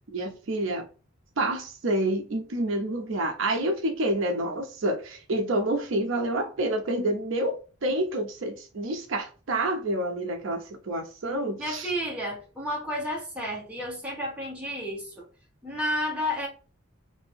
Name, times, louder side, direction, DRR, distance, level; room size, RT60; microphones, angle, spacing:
voice 1, 0.1-0.8 1.4-11.9, right 1 dB, 60° right, 0.5 m, -28 dB
voice 2, 11.6-15.3 15.6-16.5, equal, 5° right, 1.2 m, -31 dB
2.8 x 2.6 x 4.4 m
head